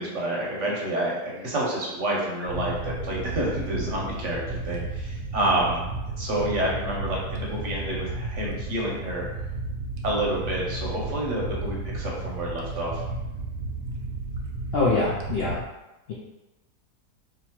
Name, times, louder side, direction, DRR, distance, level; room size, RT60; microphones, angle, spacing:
voice 1, 0.0-9.2 10.0-13.0, right 1 dB, 55° right, -4 dB, 1.0 m, -29 dB
sound 1, 2.5-15.6, right 2 dB, 80° right, 0.6 m, -33 dB
voice 2, 14.7-15.6 16.1-16.2, left 3 dB, 65° left, -5 dB, 0.6 m, -24 dB
2.9 x 2.7 x 4.3 m, 1.0 s
omnidirectional pair, 1.7 m